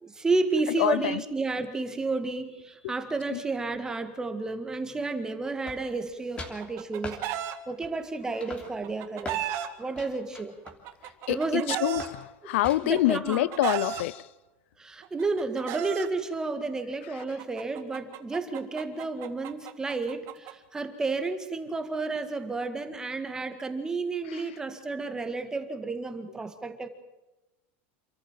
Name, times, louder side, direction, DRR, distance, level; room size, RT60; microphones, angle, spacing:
voice 1, 0.0-7.3 7.7-9.5 9.8-10.5 11.3-11.8 12.8-13.5 14.8-26.9, right 3 dB, 10° right, 1.8 m, -31 dB
voice 2, 0.8-1.2 3.3-3.4 11.3-14.3 24.3-24.4, left 16 dB, 80° left, 0.6 m, -26 dB
sound 1, 5.6-6.1 6.4-6.6 7.0-7.2 7.8-8.1 8.4-9.5 9.9-11.6 12.0-12.2 12.6-13.1, left 2 dB, 15° left, 3.1 m, -42 dB
Chicken rooster, 6.4-7.6 8.6-9.7 10.7-12.1 13.0-14.0 15.0-16.1 17.2-20.5, right 12 dB, 45° right, 1.8 m, -34 dB
28.0 x 14.0 x 7.5 m
supercardioid pair, 160°, 7 cm